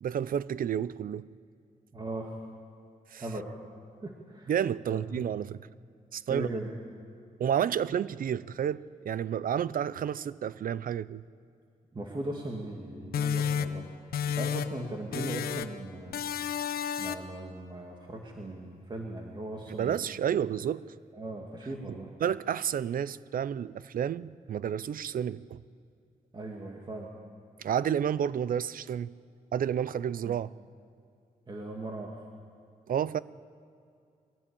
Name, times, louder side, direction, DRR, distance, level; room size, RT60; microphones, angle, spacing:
voice 1, 0.0-1.3 3.1-3.2 4.5-5.6 6.1-6.5 7.4-11.2 19.8-20.8 22.2-25.6 27.6-29.1 29.5-30.5 32.9-33.2, right 9 dB, 70° right, 0.5 m, -30 dB
voice 2, 1.9-2.3 3.2-3.5 4.0-4.5 4.9-5.2 6.3-6.7 11.9-16.3 17.0-20.0 21.1-22.1 26.3-27.2 30.2-30.4 31.5-32.2, right 2 dB, 30° right, 2.1 m, -38 dB
sound 1, 13.1-14.9 15.1-15.8 16.1-17.4, left 8 dB, 90° left, 0.7 m, -31 dB
22.5 x 16.5 x 8.6 m
cardioid pair, 100°, 15 cm